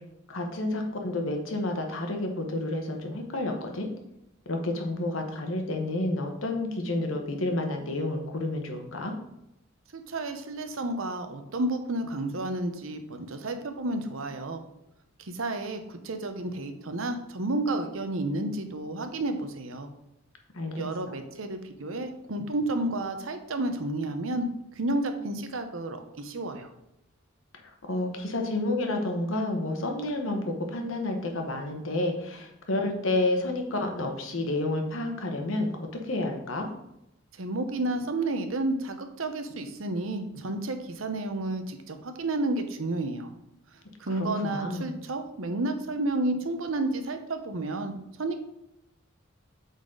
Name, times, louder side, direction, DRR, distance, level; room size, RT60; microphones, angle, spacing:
voice 1, 0.3-3.9 4.5-9.1 20.5-20.8 27.6-36.7 44.1-44.9, left 2 dB, 70° left, 3 dB, 1.2 m, -30 dB
voice 2, 9.9-14.6 15.2-19.9 20.8-24.5 24.7-26.7 37.4-43.3 44.0-48.4, right 2 dB, 75° right, 7 dB, 0.8 m, -31 dB
8.1 x 4.1 x 3.8 m, 0.84 s
head